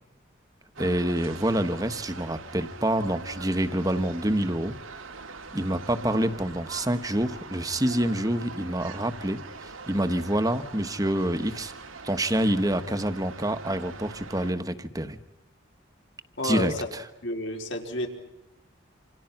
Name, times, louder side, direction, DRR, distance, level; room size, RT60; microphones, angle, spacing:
voice 1, 0.8-4.8 5.5-11.7 12.0-15.2 16.4-17.0, right 1 dB, 15° right, 9 dB, 1.3 m, -27 dB
sound 1, 0.8-14.5, right 4 dB, 85° right, 2.1 m, -43 dB
voice 2, 16.4-16.9 17.2-18.1, left 1 dB, 65° left, 2 dB, 4.5 m, -30 dB
28.5 x 27.5 x 5.9 m, 0.92 s
head